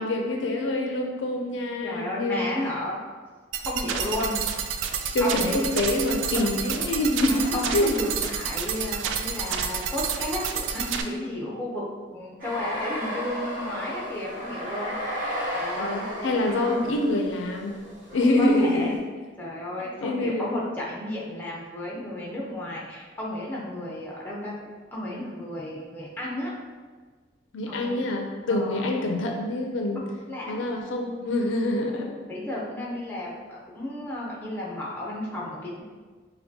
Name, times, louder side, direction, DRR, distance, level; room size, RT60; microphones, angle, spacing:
voice 1, 0.0-2.5 5.1-7.9 15.8-17.8 18.1-19.0 20.0-20.6 27.5-30.0 30.5-32.2, left 1 dB, 75° left, 2 dB, 0.4 m, -26 dB
voice 2, 1.8-3.0 3.6-4.4 5.2-5.7 6.5-6.6 7.3-11.8 12.1-14.9 15.5-16.0 16.5-16.8 18.4-18.9 19.4-24.5 24.9-26.5 27.7-28.0 28.5-28.8 30.3-30.6 32.3-35.8, left 1 dB, 10° left, -5 dB, 0.7 m, -33 dB
sound 1, 3.5-11.0, right 7 dB, 75° right, 0.3 m, -29 dB
sound 2, 12.4-19.0, equal, 45° right, 1.1 m, -34 dB
5.6 x 2.2 x 2.7 m, 1.4 s
head